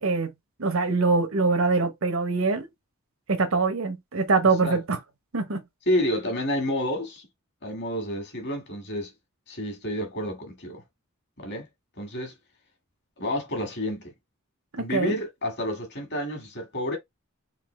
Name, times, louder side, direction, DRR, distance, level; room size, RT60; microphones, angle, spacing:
voice 1, 0.6-2.7 3.3-5.0 5.3-5.6 14.7-15.1, right 4 dB, 70° right, 0.8 m, -23 dB
voice 2, 5.9-7.2 7.6-9.1 9.5-10.8 11.4-11.7 12.0-12.3 13.2-14.1 14.8-17.0, left 1 dB, 50° left, 1.6 m, -29 dB
3.9 x 2.8 x 3.1 m
head